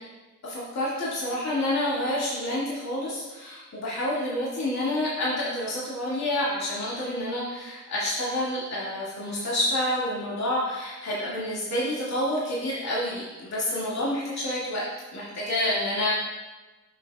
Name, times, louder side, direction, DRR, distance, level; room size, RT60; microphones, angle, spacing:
voice 1, 0.4-14.8 15.1-16.1, left 1 dB, 55° left, -8 dB, 2.2 m, -28 dB
9.5 x 6.6 x 2.4 m, 1.2 s
cardioid pair, 70°, 33 cm